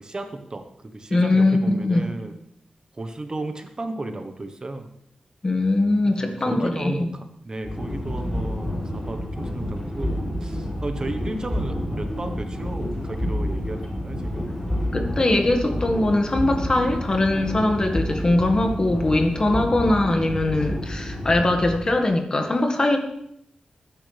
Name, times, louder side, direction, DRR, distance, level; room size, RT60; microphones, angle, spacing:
voice 1, 0.0-2.3 2.9-4.9 6.0-14.6, right 2 dB, 40° right, 6 dB, 1.3 m, -34 dB
voice 2, 1.1-2.1 5.4-7.1 14.9-23.0, left 2 dB, 35° left, 4 dB, 1.9 m, -21 dB
sound 1, 7.6-21.8, left 1 dB, 15° left, 6.0 m, -29 dB
20.0 x 10.5 x 3.5 m, 0.75 s
wide cardioid pair, 105°, 2 cm